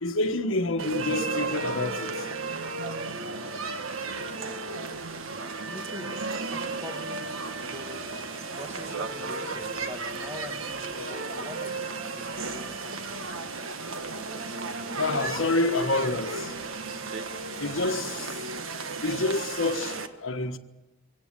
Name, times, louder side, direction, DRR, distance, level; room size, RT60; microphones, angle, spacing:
voice 1, 0.0-2.1 15.0-16.5 17.6-18.3 19.0-19.9 20.2-20.6, left 2 dB, 80° left, 1.4 m, -27 dB
sound 1, 0.8-20.1, right 3 dB, 85° right, 1.5 m, -34 dB
voice 2, 5.7-8.2 8.5-12.8, left 1 dB, 10° right, 1.4 m, -44 dB
24.5 x 17.5 x 8.9 m
head